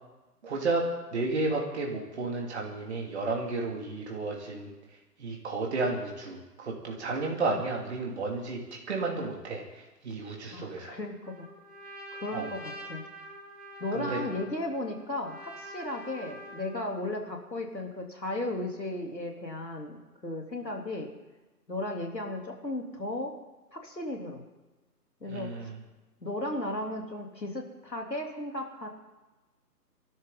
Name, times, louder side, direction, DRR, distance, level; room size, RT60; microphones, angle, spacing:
voice 1, 0.4-4.7 5.2-8.6 8.9-11.0 12.3-12.5 13.9-14.2 25.3-25.8, right 3 dB, 40° right, -1 dB, 2.8 m, -32 dB
voice 2, 10.5-11.5 12.1-13.0 13.8-21.1 21.7-23.4 23.7-24.5 25.2-25.7 26.2-28.9, left 1 dB, 85° left, 1 dB, 3.5 m, -35 dB
Trumpet, 11.2-16.9, equal, 65° right, 5.8 m, -45 dB
25.5 x 12.0 x 4.0 m, 1.1 s
figure-of-eight pair, 145°, 49 cm